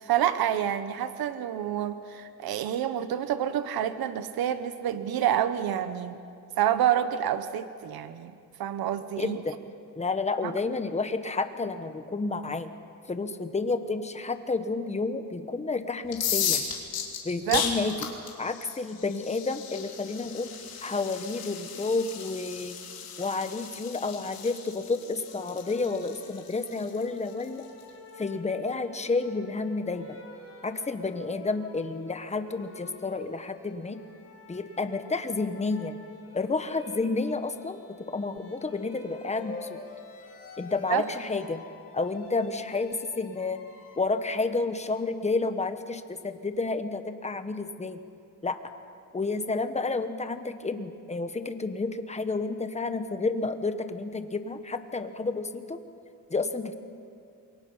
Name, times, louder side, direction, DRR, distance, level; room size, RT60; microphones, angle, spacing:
voice 1, 0.0-6.2 6.6-8.3 8.6-9.4 10.4-10.5 17.5-17.6 40.9-41.0, right 10 dB, 80° right, 11 dB, 1.1 m, -28 dB
voice 2, 9.2-9.6 10.0-12.7 13.1-16.7 17.2-17.9 18.4-20.5 20.8-22.8 23.2-27.7 28.2-30.2 30.6-34.0 34.5-36.0 36.3-37.8 38.1-39.8 40.6-41.6 41.9-43.6 44.0-48.0 48.4-48.6 49.1-55.8 56.3-56.7, left 3 dB, 20° left, 8 dB, 1.2 m, -30 dB
sound 1, 16.1-27.8, left 8 dB, 75° left, 3.4 m, -35 dB
sound 2, 24.6-44.0, left 3 dB, 40° left, 5.7 m, -48 dB
27.5 x 23.0 x 5.6 m, 2.5 s
cardioid pair, 120°, 36 cm